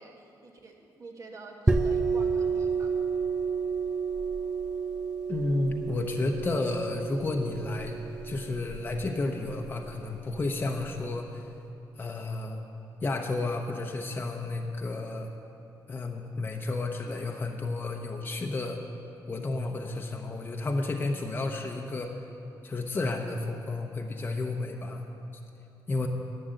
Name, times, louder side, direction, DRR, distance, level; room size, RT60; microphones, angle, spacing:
voice 1, 0.0-3.0, right 3 dB, 45° right, 2 dB, 1.4 m, -47 dB
sound 1, 1.7-11.0, right 4 dB, 10° right, 0.4 m, -31 dB
voice 2, 5.3-8.0 8.2-11.4 12.0-12.6 13.0-15.3 15.9-18.8 19.3-22.2 22.6-25.0 25.9-26.1, left 2 dB, 25° left, 1 dB, 0.8 m, -31 dB
11.5 x 7.7 x 7.8 m, 2.7 s
cardioid pair, 135°, 8 cm